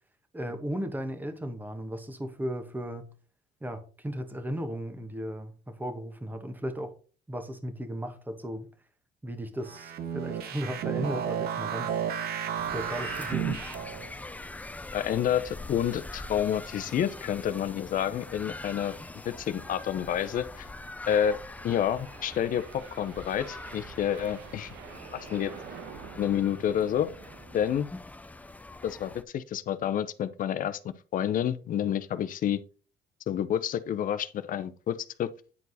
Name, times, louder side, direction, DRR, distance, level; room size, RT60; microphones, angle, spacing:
voice 1, 0.3-3.1 3.6-6.9 7.3-8.7 9.2-11.9 12.7-13.6, equal, 10° right, 1.3 m, -35 dB
sound 1, 9.6-14.1, right 9 dB, 65° right, 1.0 m, -32 dB
sound 2, 12.6-29.2, left 2 dB, 10° left, 0.5 m, -43 dB
voice 2, 14.9-18.9 19.2-20.7 21.1-21.4 21.6-22.6 23.0-24.7 25.3-25.5 26.2-27.1 27.5-27.9 28.8-30.8 31.1-32.6 33.3-35.3, left 9 dB, 55° left, 0.7 m, -29 dB
sound 3, 18.7-27.6, right 7 dB, 90° right, 1.0 m, -49 dB
9.7 x 4.5 x 4.1 m
cardioid pair, 110°, 17 cm